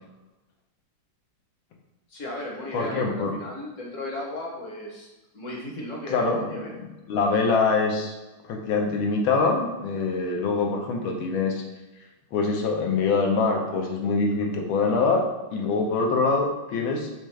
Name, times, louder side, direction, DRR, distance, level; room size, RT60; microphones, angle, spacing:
voice 1, 2.1-5.1 5.3-6.7, left 1 dB, 55° left, -2 dB, 0.9 m, -35 dB
voice 2, 2.7-3.3 6.1-6.6 7.1-8.1 8.5-11.6 12.3-15.2 15.5-17.1, left 4 dB, 90° left, 1 dB, 1.6 m, -24 dB
5.1 x 3.3 x 3.1 m, 1.1 s
omnidirectional pair, 2.1 m